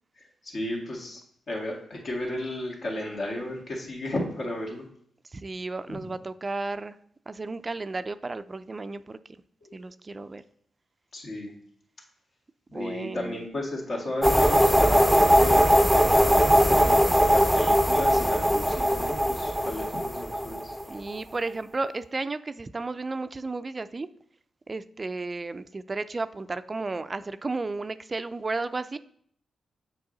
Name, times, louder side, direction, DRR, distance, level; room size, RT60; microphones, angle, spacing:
voice 1, 0.4-1.2 1.5-4.9 5.9-6.1 9.6-9.8 11.1-11.5 12.7-15.9 16.7-17.0 17.3-20.7, left 1 dB, 65° left, -2 dB, 2.1 m, -34 dB
voice 2, 5.3-7.0 7.3-9.2 9.7-10.4 12.7-13.4 20.9-24.1 24.7-29.0, right 3 dB, 35° right, 12 dB, 0.4 m, -33 dB
sound 1, 14.2-21.1, equal, ahead, 0.6 m, -20 dB
6.9 x 4.7 x 3.9 m, 0.65 s
supercardioid pair, 45°, 0 cm